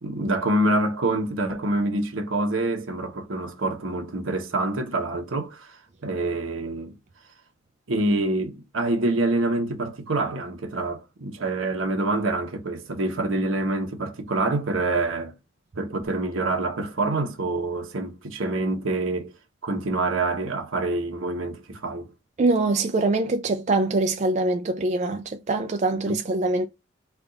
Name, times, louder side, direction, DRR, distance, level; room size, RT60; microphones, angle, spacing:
voice 1, 0.0-6.9 7.9-15.3 15.8-19.3 19.6-22.1 26.0-26.1, right 2 dB, 80° right, 1.0 m, -26 dB
voice 2, 22.4-26.7, right 2 dB, 35° right, 0.3 m, -23 dB
3.4 x 2.4 x 3.9 m
head